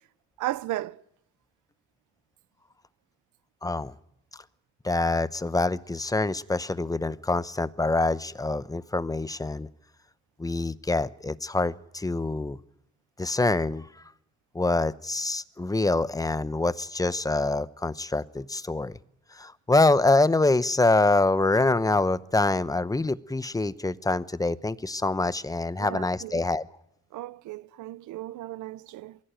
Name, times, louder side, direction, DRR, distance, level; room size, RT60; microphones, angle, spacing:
voice 1, 0.4-1.0 25.8-26.4 27.1-29.2, right 15 dB, 85° right, 0.8 m, -35 dB
voice 2, 3.6-3.9 4.8-9.7 10.4-12.6 13.2-13.9 14.5-19.0 19.3-26.7, left 2 dB, 10° left, 0.8 m, -25 dB
22.5 x 16.0 x 9.0 m
cardioid pair, 90°, 30 cm